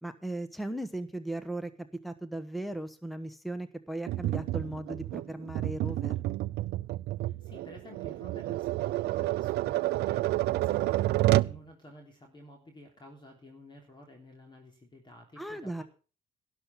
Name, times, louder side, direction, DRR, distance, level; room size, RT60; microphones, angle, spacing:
voice 1, 0.0-6.1 15.4-15.8, right 1 dB, ahead, 10 dB, 1.2 m, -37 dB
Tap, 4.1-11.6, right 17 dB, 75° right, 0.5 m, -29 dB
voice 2, 7.2-15.8, left 1 dB, 25° left, 2 dB, 3.3 m, -52 dB
12.0 x 11.0 x 5.8 m, 0.37 s
cardioid pair, 110°, 17 cm